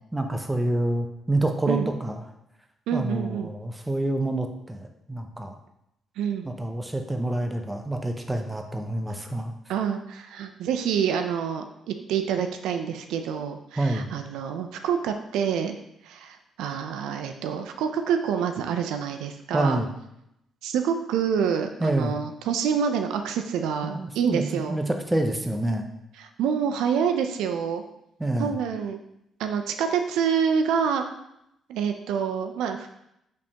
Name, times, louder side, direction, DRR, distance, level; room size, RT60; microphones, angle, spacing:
voice 1, 0.1-2.2 2.9-5.5 6.4-9.5 13.8-14.1 19.5-19.9 21.8-22.1 23.8-25.9 28.2-28.5, right 1 dB, 10° right, 4 dB, 0.6 m, -27 dB
voice 2, 2.9-3.5 6.2-6.5 9.7-15.8 16.0-19.8 20.6-24.8 26.2-27.8 28.4-29.0 29.4-31.1 31.7-32.9, right 7 dB, 90° right, 6 dB, 0.4 m, -27 dB
5.2 x 3.4 x 2.8 m, 0.80 s
cardioid pair, 90°, 0 cm